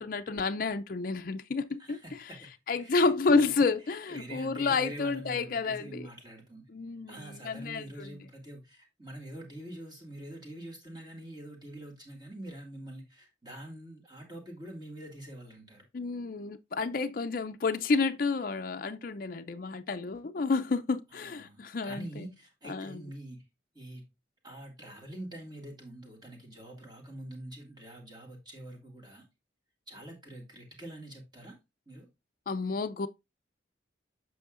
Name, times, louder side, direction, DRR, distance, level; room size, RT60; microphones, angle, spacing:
voice 1, 0.0-2.3 2.7-6.1 6.7-8.2 15.9-22.3 22.6-23.0 32.5-33.1, left 4 dB, 50° left, 0.4 m, -30 dB
voice 2, 1.8-2.5 2.8-6.6 7.1-15.9 21.2-23.4 23.7-24.0 24.4-29.3 29.9-31.6 31.9-32.1, right 1 dB, 25° right, 2.1 m, -45 dB
8.0 x 6.3 x 2.5 m
head